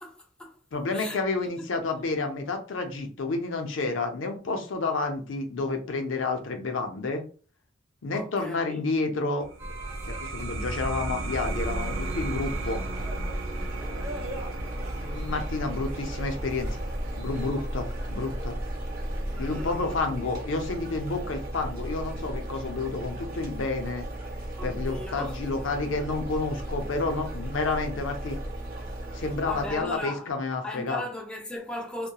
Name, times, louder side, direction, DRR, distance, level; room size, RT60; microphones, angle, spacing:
voice 1, 0.0-0.6 0.9-1.7 8.1-8.8 19.2-19.9 24.6-25.4 29.1-30.3 30.6-32.1, left 1 dB, 5° left, 0.4 m, -38 dB
voice 2, 0.7-7.2 8.0-9.5 10.0-12.8 15.0-16.8 17.2-18.6 19.4-24.1 24.6-28.4 29.1-31.0, left 3 dB, 85° left, 0.6 m, -30 dB
sound 1, 9.4-20.6, right 2 dB, 85° right, 0.4 m, -38 dB
sound 2, 9.6-20.0, equal, 15° right, 0.8 m, -37 dB
sound 3, 11.1-30.1, right 1 dB, 50° right, 0.7 m, -36 dB
2.8 x 2.2 x 2.3 m
head